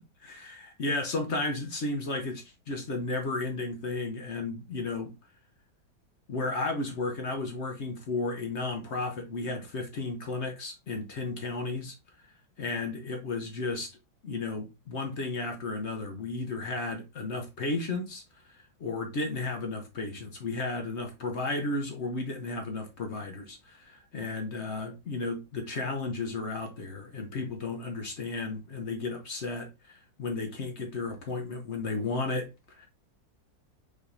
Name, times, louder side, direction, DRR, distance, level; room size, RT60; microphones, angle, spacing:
voice 1, 0.4-5.1 6.3-12.0 12.6-13.9 14.2-18.2 18.5-32.9, left 3 dB, 50° left, 0.9 m, -33 dB
5.0 x 3.5 x 2.6 m
omnidirectional pair, 1.9 m